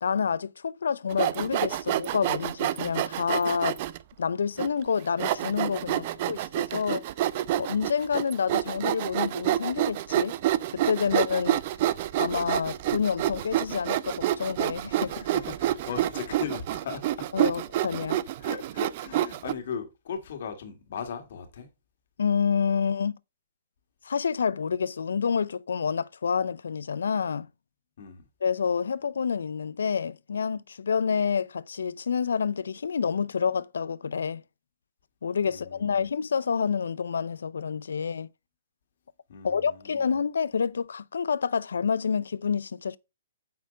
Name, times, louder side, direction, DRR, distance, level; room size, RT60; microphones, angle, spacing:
voice 1, 0.0-3.8 4.2-7.0 7.6-10.4 10.7-11.6 12.2-15.2 17.3-18.2 22.2-23.2 24.0-27.5 28.4-34.4 35.2-38.3 39.4-43.0, left 6 dB, 75° left, 0.5 m, -28 dB
Sawing, 1.1-4.0 4.6-4.7 5.2-19.5, right 13 dB, 45° right, 0.6 m, -28 dB
voice 2, 5.9-6.4 15.0-17.3 18.4-21.7 28.0-28.3 35.4-36.0 39.3-40.1, left 6 dB, 60° left, 2.1 m, -38 dB
9.4 x 4.3 x 5.2 m
hypercardioid pair, 130°, 0 cm